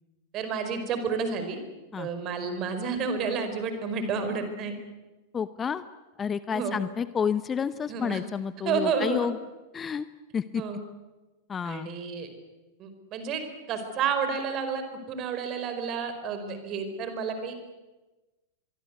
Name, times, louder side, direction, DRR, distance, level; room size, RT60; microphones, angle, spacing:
voice 1, 0.3-1.6 2.0-4.7 6.5-6.8 7.9-8.2 8.6-9.3 10.6-10.8 11.6-12.3 12.8-13.4 13.7-17.5, right 5 dB, 35° right, 8 dB, 4.8 m, -30 dB
voice 2, 5.3-5.8 6.2-9.4 9.7-10.1 10.3-10.6 11.5-11.9, left 7 dB, 20° left, 16 dB, 0.8 m, -30 dB
24.5 x 23.5 x 8.2 m, 1.1 s
figure-of-eight pair, 90°, 0 cm